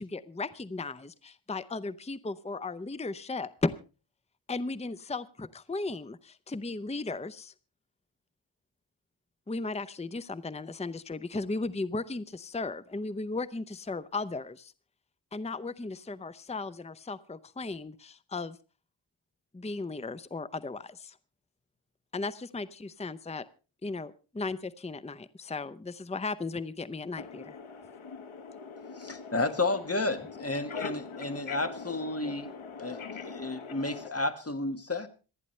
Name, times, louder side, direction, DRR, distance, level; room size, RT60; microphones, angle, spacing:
voice 1, 0.0-3.8 4.5-7.5 9.5-14.7 15.3-18.6 19.5-21.2 22.1-23.5 23.8-27.4, left 3 dB, 15° left, 0.7 m, -36 dB
voice 2, 27.2-34.1, left 5 dB, 70° left, 1.4 m, -42 dB
voice 3, 29.0-32.5 32.8-35.1, left 2 dB, 30° left, 1.6 m, -32 dB
27.0 x 9.8 x 3.2 m
wide cardioid pair, 65°, 49 cm